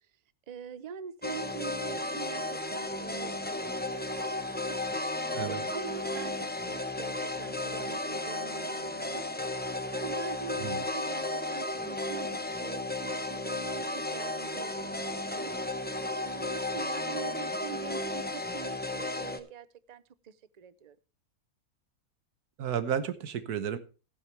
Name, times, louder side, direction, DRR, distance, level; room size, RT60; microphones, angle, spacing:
voice 1, 0.5-4.8 5.5-9.3 9.9-15.5 16.2-21.0, right 8 dB, 50° right, 15 dB, 0.5 m, -45 dB
sound 1, 1.2-19.4, left 2 dB, 10° left, 0.7 m, -34 dB
voice 2, 22.6-23.8, right 8 dB, 90° right, 11 dB, 1.5 m, -32 dB
14.0 x 10.5 x 3.3 m, 0.34 s
omnidirectional pair, 1.6 m